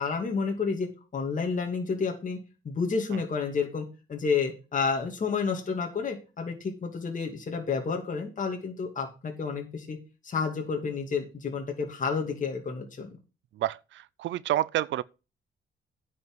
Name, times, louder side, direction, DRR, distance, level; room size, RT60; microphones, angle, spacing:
voice 1, 0.0-2.4 2.6-10.0 10.2-13.1, left 5 dB, 40° left, 2.5 m, -30 dB
voice 2, 13.6-15.0, right 13 dB, 70° right, 0.5 m, -29 dB
9.4 x 5.7 x 6.2 m
cardioid pair, 90°, 20 cm